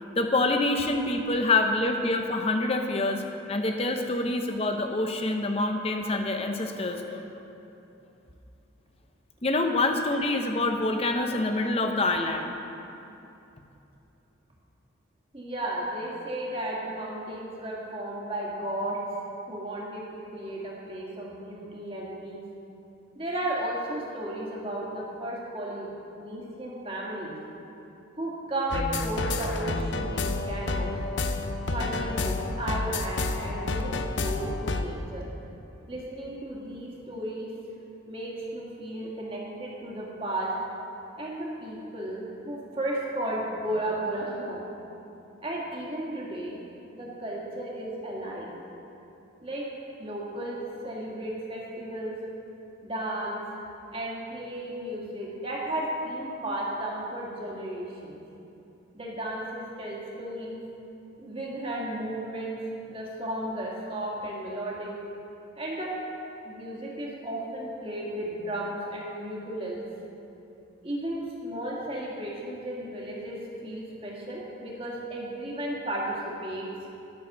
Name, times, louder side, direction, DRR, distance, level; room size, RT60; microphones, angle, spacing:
voice 1, 0.2-7.2 9.4-12.5, left 2 dB, 30° left, 5 dB, 0.7 m, -26 dB
voice 2, 15.3-19.0 19.5-22.4 23.2-25.9 26.2-27.4 28.2-31.0 31.7-35.3 35.9-37.5 38.1-40.5 41.2-44.7 45.4-46.6 46.9-48.5 49.4-49.7 50.0-52.2 52.8-53.4 53.9-58.2 58.9-60.6 61.2-62.6 62.9-65.0 65.6-66.0 66.4-69.8 70.8-76.7, right 1 dB, 25° right, -4 dB, 1.8 m, -34 dB
sound 1, 28.7-34.9, left 3 dB, 70° left, 0.6 m, -30 dB
11.5 x 6.3 x 6.6 m, 2.9 s
head